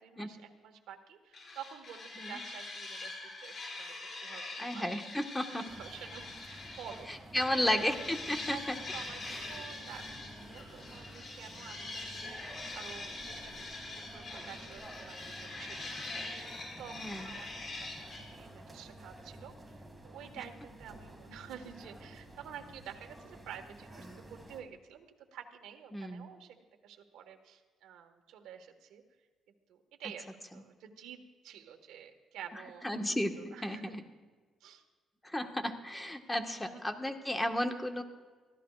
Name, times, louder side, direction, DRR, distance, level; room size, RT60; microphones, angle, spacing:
voice 1, 0.0-4.8 5.5-8.1 8.5-16.1 16.8-26.6 26.8-29.0 29.7-30.3 30.5-32.9 33.5-33.9 34.6-34.8 35.9-36.1 36.4-36.6, right 8 dB, 85° right, 5 dB, 1.6 m, -50 dB
sound 1, 1.3-7.0 7.4-18.2, left 2 dB, 45° left, 5.8 m, -44 dB
voice 2, 4.6-5.6 7.3-8.8 9.3-9.4 16.9-17.3 25.9-26.2 32.8-34.0 35.2-38.0, left 1 dB, 10° left, 5 dB, 1.5 m, -33 dB
sound 2, 5.7-24.6, right 1 dB, 10° right, 2.4 m, -51 dB
24.5 x 15.5 x 2.5 m, 1.4 s
cardioid pair, 90°, 0 cm